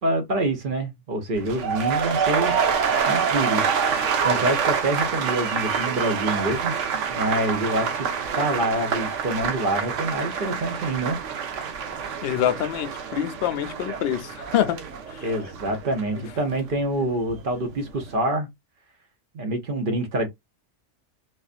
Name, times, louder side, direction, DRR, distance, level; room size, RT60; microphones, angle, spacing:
voice 1, 0.0-2.5 3.1-6.8 7.1-8.1 8.4-11.2 15.2-18.5 19.3-20.3, right 1 dB, 50° right, 0.9 m, -26 dB
sound 1, 1.3-17.4 17.7-18.1, right 6 dB, 80° right, 1.1 m, -27 dB
voice 2, 12.2-14.8 15.1-15.2 16.1-16.2, left 11 dB, 60° left, 0.8 m, -25 dB
4.2 x 2.5 x 2.4 m
omnidirectional pair, 1.3 m